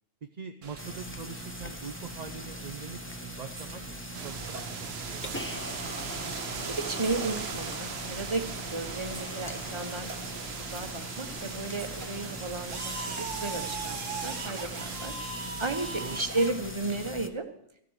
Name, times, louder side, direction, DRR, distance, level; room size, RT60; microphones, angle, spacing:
voice 1, 0.2-3.9 4.2-5.8 16.0-16.2, right 5 dB, 40° right, 6 dB, 0.6 m, -43 dB
sound 1, 0.6-17.1, right 3 dB, 85° right, 1.7 m, -41 dB
sound 2, 0.8-17.3, left 1 dB, 15° left, 0.4 m, -41 dB
sound 3, 4.1-15.1, right 6 dB, 60° right, 1.0 m, -40 dB
voice 2, 6.6-8.4 8.7-10.1 10.3-15.1 15.6-17.4, right 3 dB, 25° right, 6 dB, 1.2 m, -34 dB
14.0 x 7.6 x 8.1 m, 0.72 s
omnidirectional pair, 1.3 m